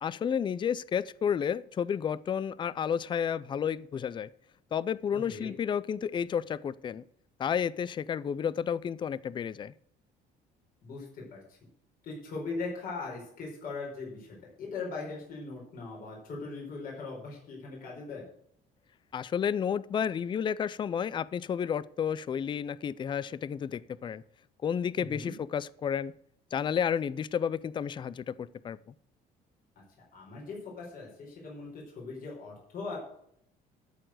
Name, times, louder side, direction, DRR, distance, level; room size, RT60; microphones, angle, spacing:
voice 1, 0.0-4.3 4.7-7.0 7.4-9.7 19.1-24.2 24.6-26.1 26.5-28.8, left 8 dB, 30° left, 18 dB, 0.4 m, -31 dB
voice 2, 10.8-11.6 12.0-18.2 25.0-25.3 29.8-29.9 30.1-33.0, left 3 dB, 55° left, -3 dB, 4.7 m, -40 dB
12.5 x 4.6 x 7.7 m, 0.68 s
cardioid pair, 110°, 17 cm